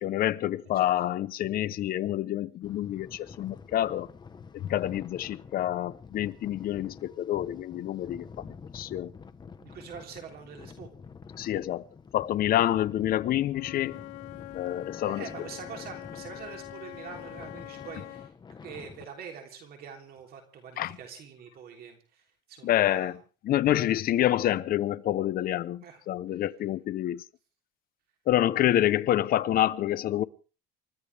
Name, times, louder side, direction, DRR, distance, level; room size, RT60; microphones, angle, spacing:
voice 1, 0.0-4.1 4.5-9.1 11.4-11.9 12.1-14.0 14.5-15.3 20.8-21.0 22.6-23.2 23.4-27.2 28.3-30.2, left 13 dB, 50° left, 0.9 m, -27 dB
sound 1, 2.6-19.1, left 5 dB, 20° left, 1.2 m, -48 dB
voice 2, 9.5-10.9 15.0-18.3 18.6-23.2 25.8-26.0 26.3-26.4, right 7 dB, 55° right, 3.4 m, -45 dB
Wind instrument woodwind instrument, 13.5-18.3, left 18 dB, 85° left, 0.8 m, -44 dB
29.0 x 14.0 x 3.5 m
cardioid pair, 130°, 19 cm